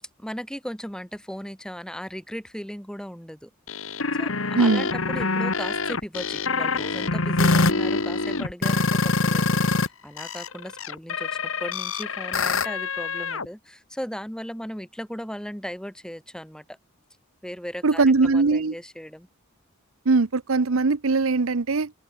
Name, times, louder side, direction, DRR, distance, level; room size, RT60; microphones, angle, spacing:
voice 1, 0.2-3.5 4.1-16.8 17.4-18.0 18.3-19.3, equal, 5° left, 3.3 m, -37 dB
sound 1, 3.7-9.9 10.2-13.5, left 3 dB, 70° left, 1.9 m, -25 dB
voice 2, 4.5-4.9 17.8-18.7 20.0-21.9, right 3 dB, 75° right, 0.8 m, -20 dB
head